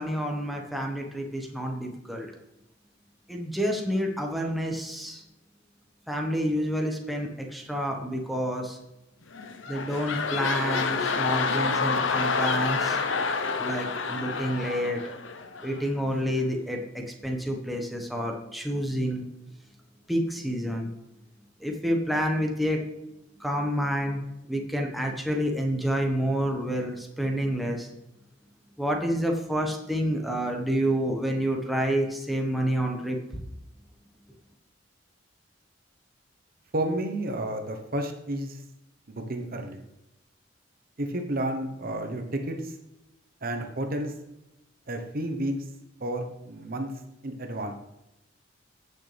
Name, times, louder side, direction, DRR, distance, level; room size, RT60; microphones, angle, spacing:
voice 1, 0.0-2.3 3.3-5.2 6.1-8.8 9.7-13.0 13.6-15.0 15.6-19.2 20.1-20.9 21.6-22.8 23.4-24.2 24.5-27.9 28.8-33.4, equal, ahead, 0 dB, 1.3 m, -28 dB
sound 1, 9.3-15.9 16.4-16.5, left 4 dB, 75° left, 0.9 m, -28 dB
voice 2, 36.7-38.6 39.1-39.8 41.0-42.8 43.4-44.1 44.9-45.5 46.0-46.9 47.2-47.7, right 1 dB, 50° right, 5 dB, 1.1 m, -31 dB
15.0 x 6.6 x 3.4 m, 0.93 s
head